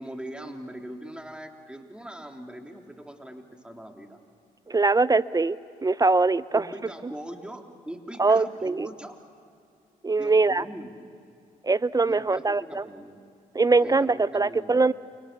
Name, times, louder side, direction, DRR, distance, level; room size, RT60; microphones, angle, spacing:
voice 1, 0.0-4.2 6.5-9.2 10.2-11.0 12.1-13.2 13.8-14.9, right 1 dB, 5° right, 3 dB, 3.4 m, -41 dB
voice 2, 4.7-6.7 8.2-8.9 10.0-10.6 11.6-12.8 13.5-14.9, right 3 dB, 25° right, 17 dB, 0.6 m, -22 dB
29.5 x 26.0 x 6.9 m, 2.5 s
supercardioid pair, 60°, 16 cm